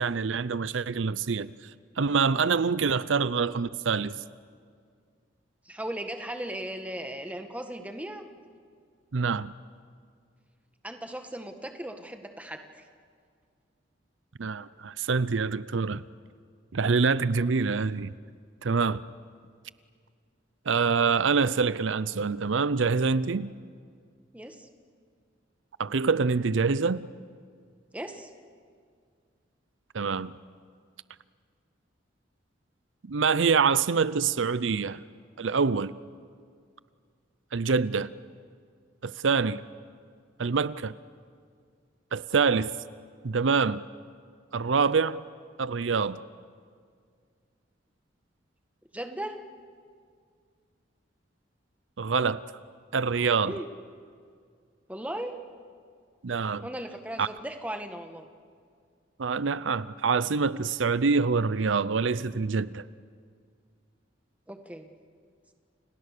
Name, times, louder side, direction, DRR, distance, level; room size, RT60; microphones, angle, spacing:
voice 1, 0.0-1.5 2.0-4.2 9.1-9.5 14.4-16.0 16.7-18.1 18.6-19.0 20.7-23.5 25.8-27.1 29.9-30.3 33.1-35.0 35.4-36.0 37.5-38.1 39.0-39.6 40.4-40.9 42.1-42.7 43.2-43.8 44.5-45.2 45.6-46.2 52.0-52.4 52.9-53.5 56.2-56.7 57.2-57.3 59.2-62.8, right 5 dB, 85° right, 0.6 m, -25 dB
voice 2, 5.7-8.2 10.8-12.8 24.3-24.7 27.9-28.3 48.9-49.4 53.5-53.7 54.9-55.4 56.6-58.3 64.5-64.9, right 1 dB, 10° right, 1.6 m, -37 dB
30.0 x 29.0 x 6.7 m
head